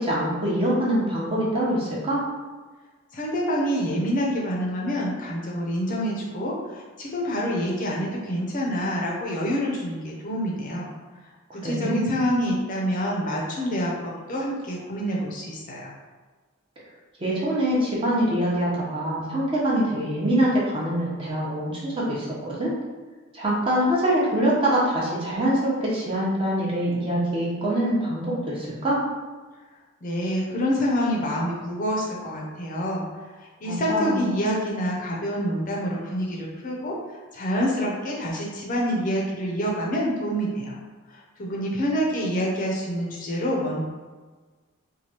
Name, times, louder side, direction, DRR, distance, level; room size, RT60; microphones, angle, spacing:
voice 1, 0.0-2.2 11.6-12.1 17.2-22.7 23.3-29.0 33.6-34.2, right 1 dB, 25° right, -6 dB, 0.7 m, -24 dB
voice 2, 3.1-10.9 11.5-15.9 30.0-33.1 33.6-37.0 37.3-40.8 41.4-43.8, equal, 40° left, -3 dB, 0.5 m, -27 dB
3.1 x 2.3 x 2.8 m, 1.3 s
head